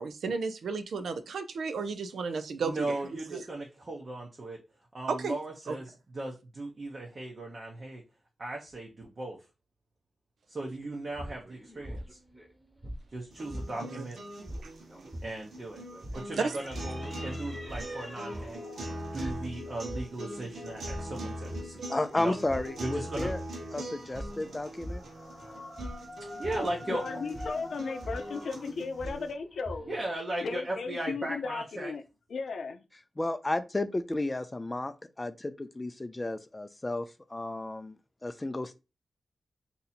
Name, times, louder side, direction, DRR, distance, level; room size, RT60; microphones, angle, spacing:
voice 1, 0.0-3.0 3.3-3.4 5.1-5.4 5.7-5.8 13.8-14.0 16.1-16.5, right 4 dB, 85° right, 0.4 m, -33 dB
voice 2, 2.6-4.6 4.9-8.0 8.4-9.4 10.5-12.2 13.1-14.2 15.2-15.8 16.1-18.6 19.1-21.8 22.2-22.3 22.8-23.3 26.4-27.0 29.9-31.9, right 2 dB, 40° right, 0.7 m, -37 dB
sound 1, 10.8-14.0 14.3-30.1, equal, 15° right, 1.0 m, -43 dB
sound 2, 13.3-29.3, equal, 70° right, 1.1 m, -42 dB
voice 3, 21.9-23.4 23.7-25.0 33.2-38.0 38.2-38.7, left 2 dB, 20° left, 0.4 m, -33 dB
voice 4, 26.9-29.9 30.4-32.0 32.3-32.8, left 4 dB, 65° left, 0.5 m, -35 dB
2.7 x 2.7 x 4.1 m
wide cardioid pair, 125°, 0 cm